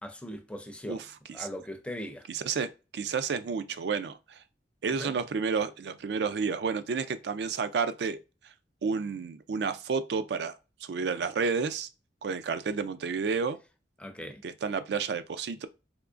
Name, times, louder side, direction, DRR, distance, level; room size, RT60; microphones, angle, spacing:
voice 1, 0.0-1.0 1.3-2.3 5.0-5.2 14.0-14.4, equal, 5° left, 0.4 m, -39 dB
voice 2, 2.3-4.4 4.8-8.2 8.8-10.6 10.8-11.9 12.2-13.6 14.4-15.7, right 5 dB, 70° right, 0.4 m, -31 dB
3.6 x 2.9 x 2.4 m
head